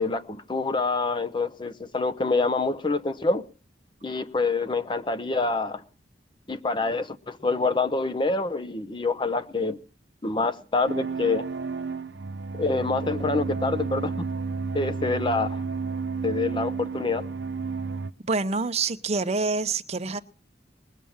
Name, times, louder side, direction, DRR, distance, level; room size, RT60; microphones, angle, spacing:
voice 1, 0.0-3.4 4.0-5.8 6.5-9.8 10.2-11.5 12.5-14.2 14.7-15.6 16.2-17.3, left 3 dB, 25° left, 0.7 m, -26 dB
sound 1, 10.9-18.1, right 4 dB, 75° right, 0.7 m, -31 dB
voice 2, 18.2-20.2, right 4 dB, 35° right, 0.7 m, -26 dB
20.5 x 7.5 x 7.2 m
head